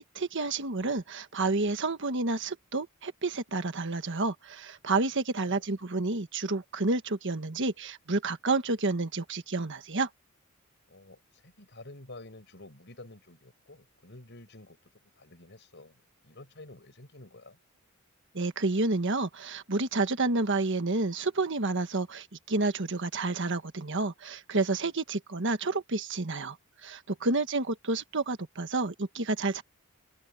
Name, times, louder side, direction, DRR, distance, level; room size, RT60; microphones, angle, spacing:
voice 1, 0.0-10.1 18.3-26.6 26.8-29.6, right 3 dB, 60° right, 1.5 m, -30 dB
voice 2, 5.4-5.7 10.9-17.6 27.1-27.3, left 2 dB, 55° left, 6.6 m, -50 dB
open air
head